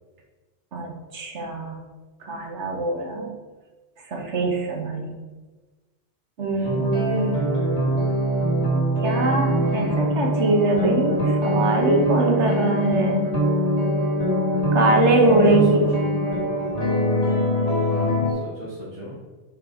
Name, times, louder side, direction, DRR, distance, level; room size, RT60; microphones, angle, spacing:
voice 1, 0.7-1.8 2.2-3.3 4.1-5.1 6.4-7.5 9.0-13.3 14.7-15.9, right 2 dB, 75° right, 2 dB, 1.4 m, -22 dB
sound 1, 6.6-18.3, equal, 70° left, 2.4 m, -23 dB
voice 2, 15.3-15.6 16.0-16.4 17.9-19.2, equal, 25° right, -9 dB, 2.0 m, -38 dB
5.3 x 5.1 x 4.9 m, 1.2 s
omnidirectional pair, 1.2 m